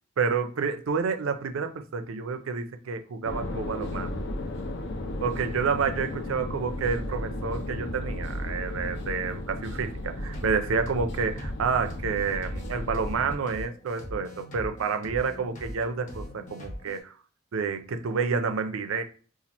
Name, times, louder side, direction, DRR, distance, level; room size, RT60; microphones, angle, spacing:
voice 1, 0.2-4.1 5.2-17.1 17.5-19.0, right 5 dB, 85° right, 0.5 m, -29 dB
sound 1, 3.2-13.4, left 1 dB, 60° left, 0.6 m, -34 dB
sound 2, 9.9-17.0, left 1 dB, 40° left, 0.9 m, -41 dB
2.8 x 2.4 x 4.0 m
head